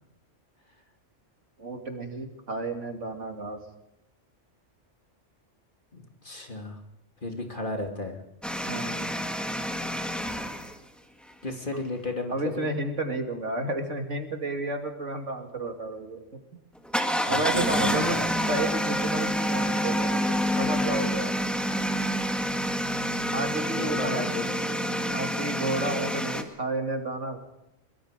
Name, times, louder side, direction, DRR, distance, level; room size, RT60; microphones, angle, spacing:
voice 1, 1.6-3.6 8.7-9.1 12.3-16.2 16.5-16.6 17.3-18.2 18.5-21.3 23.3-24.2 25.1-27.4, right 2 dB, 80° right, 4 dB, 3.0 m, -31 dB
voice 2, 5.9-6.8 7.2-8.2 11.4-12.7 17.2-18.2 23.7-24.6, left 2 dB, 45° left, 3 dB, 3.1 m, -34 dB
sound 1, 8.4-10.7 16.9-26.4, equal, ahead, 1.8 m, -28 dB
23.0 x 22.0 x 5.1 m, 0.84 s
omnidirectional pair, 1.2 m